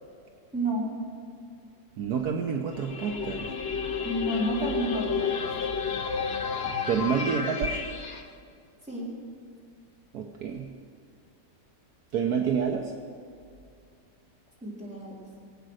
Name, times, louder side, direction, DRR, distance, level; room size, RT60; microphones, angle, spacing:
voice 1, 0.5-0.9 4.0-5.3 8.9-9.1 14.6-15.1, right 1 dB, 5° right, -7 dB, 4.1 m, -30 dB
voice 2, 2.0-3.5 6.6-7.8 10.1-10.7 12.1-12.9, right 6 dB, 65° right, 2 dB, 1.4 m, -28 dB
sound 1, 2.7-8.2, left 5 dB, 45° left, 1.0 m, -31 dB
21.5 x 8.8 x 6.4 m, 2.3 s
omnidirectional pair, 1.9 m